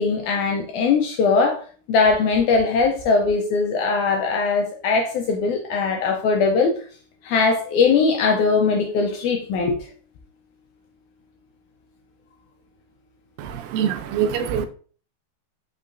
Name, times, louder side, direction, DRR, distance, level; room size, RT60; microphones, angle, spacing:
voice 1, 0.0-1.6 1.9-6.7 7.2-9.8, left 4 dB, 80° left, 1.8 m, -20 dB
voice 2, 13.4-14.7, right 8 dB, 85° right, 2.2 m, -24 dB
5.4 x 3.7 x 2.5 m
omnidirectional pair, 4.0 m